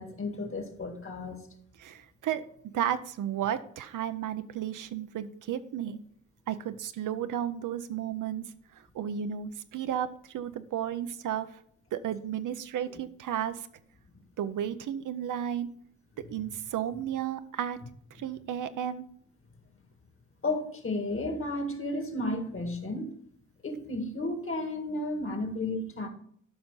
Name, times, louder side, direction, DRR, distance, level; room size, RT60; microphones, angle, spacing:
voice 1, 0.0-1.4 20.4-23.1 23.6-26.1, left 2 dB, 45° left, 5 dB, 2.0 m, -33 dB
voice 2, 1.8-2.4 2.7-6.0 6.5-8.4 8.9-11.5 11.9-13.7 14.4-15.7 16.3-17.8 18.1-19.1, right 10 dB, 90° right, 10 dB, 0.6 m, -33 dB
12.5 x 5.3 x 3.8 m, 0.66 s
cardioid pair, 85°, 30 cm